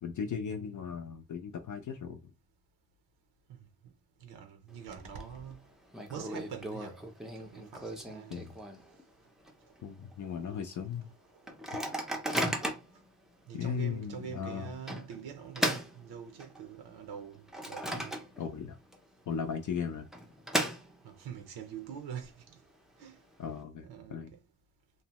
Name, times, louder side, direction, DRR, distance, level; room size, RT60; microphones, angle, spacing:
voice 1, 0.0-2.2 8.3-8.5 9.8-11.1 13.5-14.7 18.4-18.8 19.3-20.1 23.4-24.3, left 7 dB, 55° left, 0.4 m, -37 dB
voice 2, 4.2-5.6 6.1-7.0 7.3-8.5 13.5-18.2 21.0-22.6 23.0-23.2 23.8-24.4, right 7 dB, 85° right, 0.6 m, -44 dB
Microwave oven, 4.7-5.2 5.5-5.6 5.9-9.0 9.4-9.5 9.8-10.1 10.6-10.7 11.5-13.0 13.6-13.7 14.9-16.7 17.1-18.6 18.9-19.0 19.9-21.3, equal, ahead, 0.4 m, -36 dB
2.7 x 2.0 x 2.9 m
cardioid pair, 110°, 37 cm